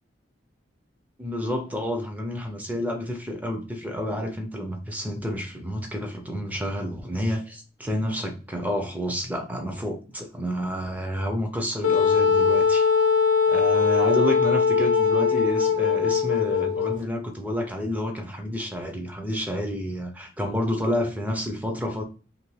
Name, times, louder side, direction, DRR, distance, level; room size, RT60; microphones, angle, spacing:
voice 1, 1.2-12.9 13.5-22.0, equal, 10° right, 0.5 m, -29 dB
Wind instrument woodwind instrument, 11.8-17.0, left 6 dB, 90° left, 0.5 m, -21 dB
2.6 x 2.5 x 3.1 m
head